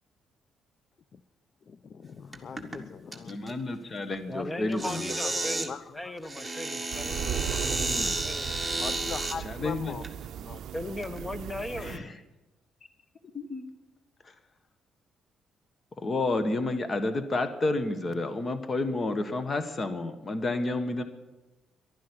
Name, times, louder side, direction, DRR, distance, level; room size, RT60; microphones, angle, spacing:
voice 1, 1.6-3.6 4.8-6.1 8.8-10.0 10.4-10.6, left 6 dB, 50° left, 13 dB, 0.6 m, -41 dB
sound 1, 2.3-2.8 3.1-3.5 4.7-5.7 6.2-9.4 10.0-10.1 10.9-11.2, right 2 dB, 5° right, 1.8 m, -32 dB
voice 2, 3.2-5.0 7.5-8.1 9.4-10.0 11.8-12.1 13.3-13.6 14.2-14.3 16.0-21.0, left 2 dB, 35° left, 10 dB, 1.4 m, -30 dB
voice 3, 4.3-8.7 10.7-12.0, left 1 dB, 20° left, 13 dB, 1.1 m, -38 dB
sound 2, 6.9-12.0, right 9 dB, 70° right, 0.5 m, -37 dB
11.5 x 11.5 x 10.0 m, 1.1 s
cardioid pair, 90°, 0 cm